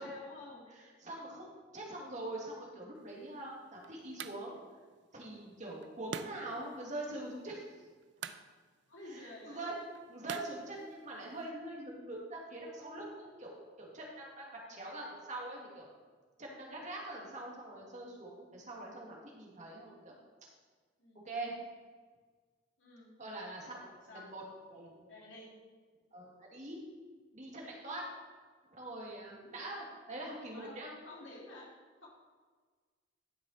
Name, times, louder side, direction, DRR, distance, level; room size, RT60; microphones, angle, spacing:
voice 1, 0.0-0.6 8.9-9.6 14.7-14.9 18.9-19.1 21.0-21.2 22.8-23.1 23.6-24.3 25.1-25.5 29.4-29.7 30.5-30.8 31.0-31.7 32.0-32.1, left 2 dB, 85° left, -3 dB, 2.8 m, -51 dB
voice 2, 0.7-4.6 5.1-7.6 9.0-9.8 10.1-15.9 16.4-20.2 21.2-21.5 23.2-24.4 24.7-25.1 26.1-26.8 27.3-28.1 28.7-30.9, right 2 dB, 40° right, -2 dB, 2.1 m, -44 dB
sound 1, 3.0-11.5, right 6 dB, 65° right, 0.5 m, -49 dB
11.5 x 6.7 x 4.2 m, 1.5 s
head